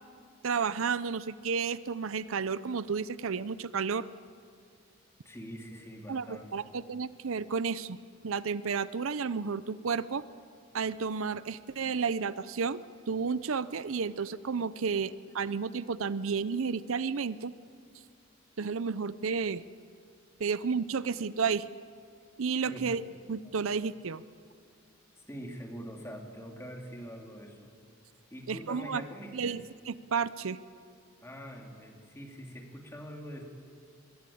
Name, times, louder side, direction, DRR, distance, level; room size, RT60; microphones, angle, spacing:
voice 1, 0.4-4.1 6.1-8.0 8.2-10.2 10.7-12.8 13.1-17.5 18.6-19.6 20.4-21.7 22.4-23.0 23.3-24.2 28.5-29.0 29.3-30.6, right 5 dB, 80° right, 16 dB, 0.6 m, -32 dB
voice 2, 5.2-6.7 22.6-23.0 25.3-27.7 28.3-29.6 31.2-33.4, equal, 15° left, 2 dB, 2.9 m, -44 dB
25.0 x 21.5 x 8.6 m, 2.2 s
head